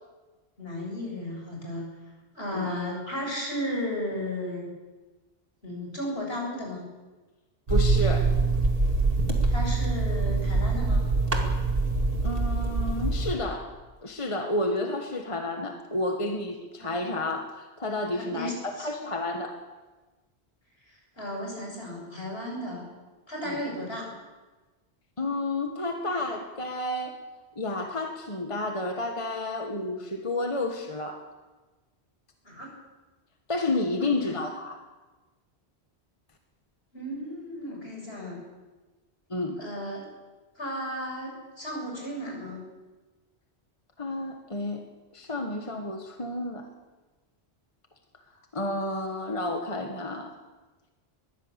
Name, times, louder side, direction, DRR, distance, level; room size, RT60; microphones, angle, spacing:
voice 1, 0.6-1.9 2.3-4.7 5.6-6.8 9.5-11.0 16.8-17.0 18.1-18.9 20.9-22.8 23.3-24.1 32.4-32.7 33.9-34.4 36.9-38.4 39.6-40.1 40.6-42.6, left 1 dB, 70° left, -1 dB, 7.5 m, -34 dB
voice 2, 7.7-8.4 12.2-13.7 14.0-19.6 23.4-23.6 25.2-27.2 27.5-31.2 33.5-34.8 39.3-39.6 44.0-44.8 45.1-46.7 48.5-50.3, left 2 dB, 30° left, 4 dB, 1.6 m, -31 dB
sound 1, 7.7-13.3, right 3 dB, 60° right, 2.6 m, -24 dB
22.0 x 16.0 x 8.2 m, 1.2 s
omnidirectional pair, 1.1 m